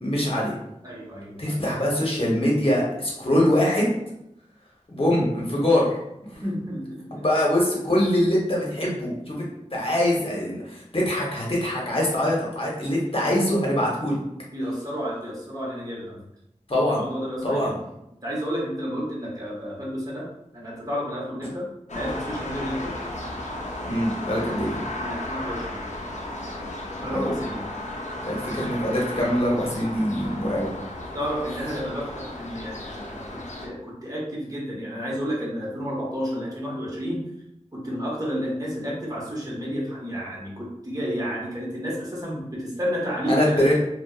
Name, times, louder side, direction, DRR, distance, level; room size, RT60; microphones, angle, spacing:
voice 1, 0.0-0.5 1.4-3.9 4.9-5.9 7.2-9.5 9.7-14.2 16.7-17.0 17.4-17.7 23.8-24.8 27.1-27.3 28.3-30.7 43.3-43.7, left 1 dB, 45° left, -3 dB, 0.8 m, -23 dB
voice 2, 0.8-1.7 6.3-7.3 14.5-16.2 16.9-17.8 18.2-23.0 24.4-24.6 25.0-25.8 27.0-27.7 31.1-37.2 37.7-43.7, equal, 30° right, -6 dB, 0.9 m, -31 dB
sound 1, 21.9-33.7, left 1 dB, 70° left, 0.5 m, -34 dB
2.5 x 2.1 x 2.3 m, 0.83 s
wide cardioid pair, 40°, 13 cm